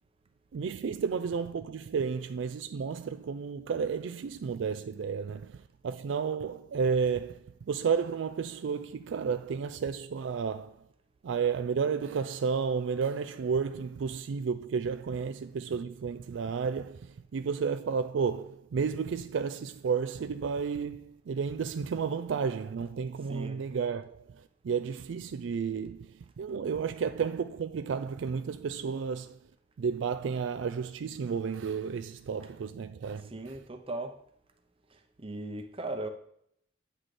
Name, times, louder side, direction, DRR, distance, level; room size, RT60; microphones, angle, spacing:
voice 1, 0.5-10.8 11.2-29.4 29.8-33.5, right 6 dB, 70° right, 0.4 m, -32 dB
voice 2, 23.3-23.6 33.3-34.1 34.9-36.1, right 2 dB, 30° right, 0.8 m, -38 dB
9.0 x 5.9 x 3.3 m
head